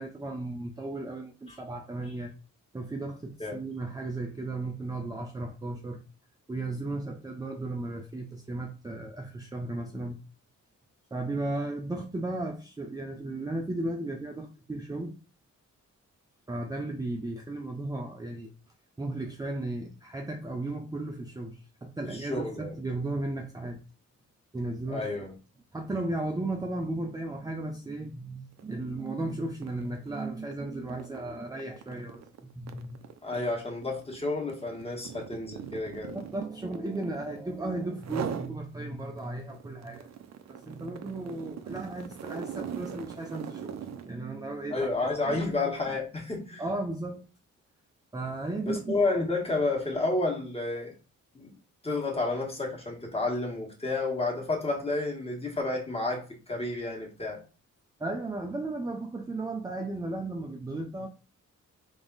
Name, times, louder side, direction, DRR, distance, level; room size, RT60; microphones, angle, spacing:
voice 1, 0.0-2.3 2.7-6.0 6.5-10.2 11.1-15.1 16.5-18.5 19.0-23.8 24.5-25.1 25.7-33.0 36.1-40.1 40.5-43.7 44.0-44.9 45.2-45.4 46.6-47.2 48.1-49.0 58.0-61.1, right 2 dB, 10° right, 0.5 m, -35 dB
voice 2, 22.1-22.7 24.9-25.3 33.2-36.1 44.7-46.6 48.6-50.9 51.3-51.5 51.8-57.4, left 2 dB, 20° left, 1.4 m, -30 dB
sound 1, 28.5-28.7 29.1-37.5 38.0-38.5 39.0-44.1, right 8 dB, 60° right, 0.6 m, -41 dB
3.5 x 3.4 x 4.0 m
wide cardioid pair, 135°, 31 cm